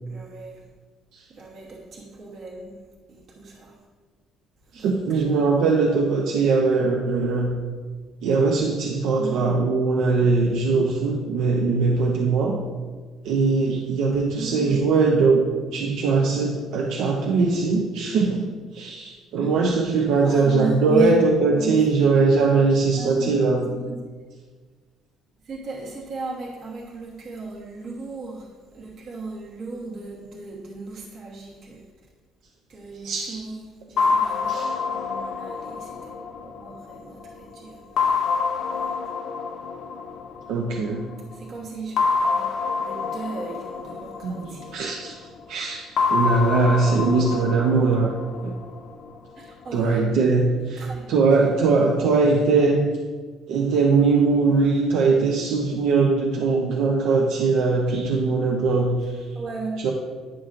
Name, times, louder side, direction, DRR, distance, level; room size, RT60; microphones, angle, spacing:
voice 1, 0.1-0.6 1.3-2.8 3.1-3.8 4.7-5.2 9.2-9.5 14.1-14.9 19.4-21.2 21.5-22.2 22.9-24.1 25.4-31.9 32.7-38.2 38.7-39.0 41.3-42.5 42.8-44.8 46.5-46.7 49.4-50.0 50.8-51.1 52.0-52.1 59.3-59.9, right 3 dB, 55° right, -4 dB, 1.2 m, -36 dB
voice 2, 4.7-7.5 8.2-12.6 13.2-18.5 18.7-23.7 33.0-33.4 34.5-34.8 40.5-41.0 44.2-45.2 45.5-48.1 48.4-48.5 49.7-50.8 51.1-52.9 53.5-59.2 59.8-59.9, right 4 dB, 80° right, 0 dB, 0.6 m, -21 dB
sound 1, 34.0-37.3 38.0-40.9 42.0-45.1 46.0-49.1, left 5 dB, 55° left, 0.5 m, -27 dB
9.7 x 6.0 x 2.5 m, 1.5 s
cardioid pair, 120°, 0 cm